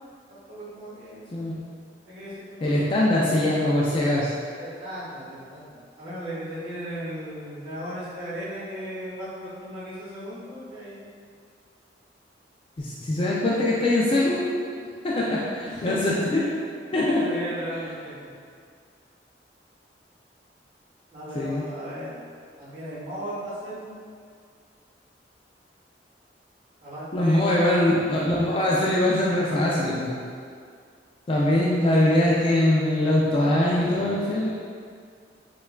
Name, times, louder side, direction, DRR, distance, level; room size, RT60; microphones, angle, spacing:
voice 1, 0.3-1.3 2.0-3.3 4.6-11.1 15.6-16.2 17.1-18.2 21.1-22.1 22.6-23.9 26.8-28.3, equal, 30° right, -10 dB, 1.3 m, -36 dB
voice 2, 2.6-4.3 12.8-14.5 15.0-16.4 16.9-17.3 21.4-21.6 27.1-30.2 31.3-34.5, left 1 dB, 30° left, -5 dB, 0.3 m, -22 dB
5.3 x 2.3 x 2.2 m, 2.2 s
head